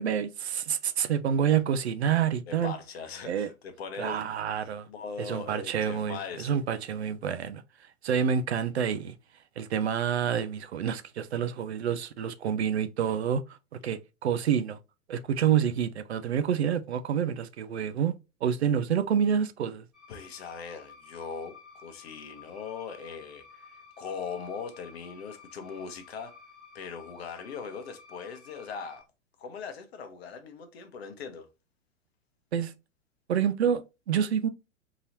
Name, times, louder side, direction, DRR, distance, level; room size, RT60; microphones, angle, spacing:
voice 1, 0.0-2.7 3.2-3.5 4.0-4.9 5.2-7.6 8.0-9.2 9.6-13.6 13.8-14.8 15.1-18.2 18.4-19.8 32.5-32.7 33.3-33.8 34.1-34.5, right 8 dB, 55° right, 0.5 m, -28 dB
voice 2, 2.5-4.3 4.9-6.5 20.1-26.3 26.7-29.0 29.4-31.5, left 6 dB, 50° left, 0.9 m, -40 dB
sound 1, 19.9-29.0, left 5 dB, ahead, 0.4 m, -52 dB
3.9 x 3.0 x 2.7 m
figure-of-eight pair, 105°, 39 cm